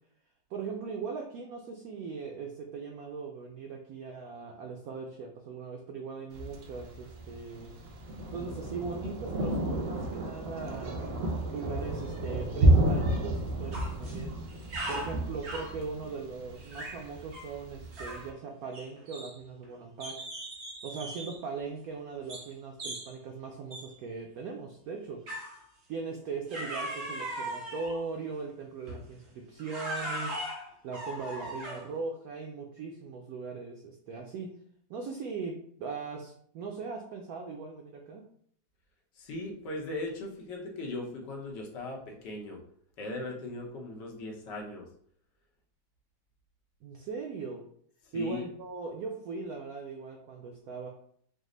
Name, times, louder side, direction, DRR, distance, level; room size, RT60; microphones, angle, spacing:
voice 1, 0.5-7.7 8.3-11.0 11.5-14.3 14.9-20.2 20.8-25.2 25.9-30.4 30.8-34.5 34.9-38.2 46.8-47.6 48.1-50.9, right 4 dB, 90° right, 2 dB, 0.8 m, -39 dB
Thunder, 6.3-18.3, right 1 dB, 70° right, 1.4 m, -31 dB
sound 1, 13.7-14.2 14.5-15.8 16.6-17.0 17.3-17.5 17.9-18.3 18.7-19.6 20.0-21.4 22.3-22.5 22.8-23.1 23.7-23.9 25.3-25.6 26.5-28.1 28.9-29.1 29.6-31.9, right 1 dB, 45° right, 1.0 m, -39 dB
voice 2, 39.1-42.6 43.0-44.9 48.0-48.4, left 2 dB, 70° left, 0 dB, 1.4 m, -38 dB
5.2 x 2.0 x 3.7 m, 0.63 s
omnidirectional pair, 2.1 m